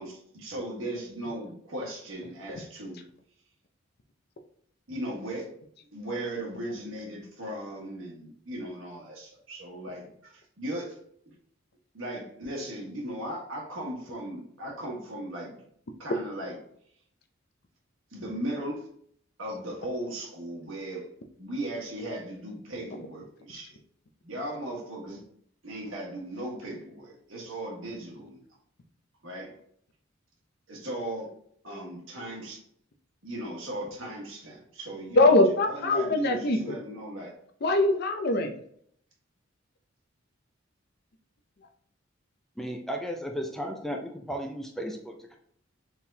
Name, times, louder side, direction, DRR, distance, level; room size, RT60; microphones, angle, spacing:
voice 1, 0.0-3.0 4.9-5.5 5.9-11.0 11.3-11.4 11.9-15.6 16.0-16.6 18.1-18.9 19.4-21.1 21.4-23.8 24.2-25.2 25.6-28.4 29.2-29.5 30.7-31.3 31.6-32.6 33.2-35.3 35.6-37.3, right 1 dB, 75° right, -2 dB, 1.5 m, -37 dB
voice 2, 35.2-36.8 37.6-38.6, left 2 dB, 50° left, 7 dB, 0.6 m, -22 dB
voice 3, 42.6-45.4, equal, ahead, 3 dB, 0.4 m, -35 dB
4.5 x 3.6 x 2.7 m, 0.65 s
head